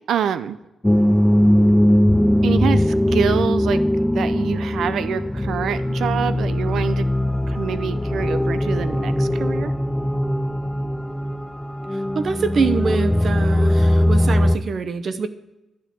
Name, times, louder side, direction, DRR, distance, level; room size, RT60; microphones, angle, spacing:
voice 1, 0.1-0.6 2.4-3.8 4.1-7.1 7.5-9.7, right 8 dB, 75° right, 13 dB, 0.6 m, -26 dB
sound 1, 0.8-14.6, left 1 dB, 5° left, 0.3 m, -20 dB
voice 2, 11.9-15.3, right 5 dB, 45° right, 11 dB, 0.8 m, -24 dB
12.0 x 7.6 x 6.8 m, 0.97 s
wide cardioid pair, 175°, 0 cm